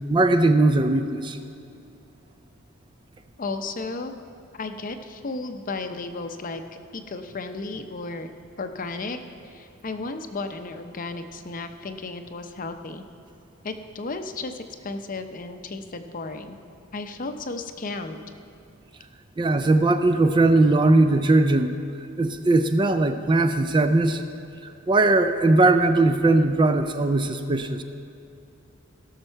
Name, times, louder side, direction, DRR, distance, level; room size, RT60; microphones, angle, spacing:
voice 1, 0.1-1.4 19.4-24.2 24.6-27.8, right 2 dB, 20° right, 8 dB, 0.3 m, -20 dB
voice 2, 3.4-4.1 4.5-6.6 6.9-8.3 8.6-9.2 9.4-13.0 13.6-16.6 16.9-18.2, left 3 dB, 40° left, 7 dB, 0.6 m, -34 dB
17.0 x 6.6 x 4.4 m, 2.6 s
head